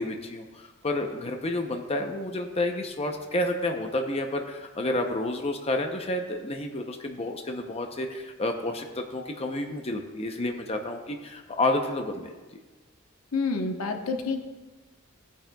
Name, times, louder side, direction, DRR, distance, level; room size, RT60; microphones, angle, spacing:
voice 1, 0.0-12.3, left 1 dB, 30° left, 4 dB, 0.7 m, -30 dB
voice 2, 13.3-14.4, left 4 dB, 85° left, 4 dB, 1.1 m, -28 dB
17.0 x 8.9 x 2.3 m, 1.2 s
head